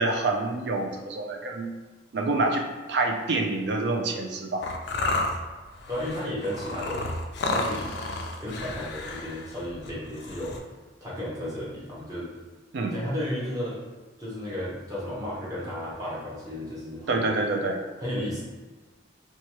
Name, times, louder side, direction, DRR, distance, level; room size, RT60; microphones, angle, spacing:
voice 1, 0.0-1.7 2.1-4.6 12.7-13.0 17.1-17.8, right 2 dB, 60° right, 3 dB, 0.4 m, -27 dB
sound 1, 4.6-10.6, left 2 dB, 60° left, 0.3 m, -31 dB
voice 2, 5.9-7.1 7.5-7.9 8.4-10.6 11.0-12.3 12.9-13.8 14.2-17.3 18.0-18.4, left 1 dB, 20° right, -8 dB, 0.8 m, -33 dB
2.9 x 2.3 x 2.9 m, 1.3 s
head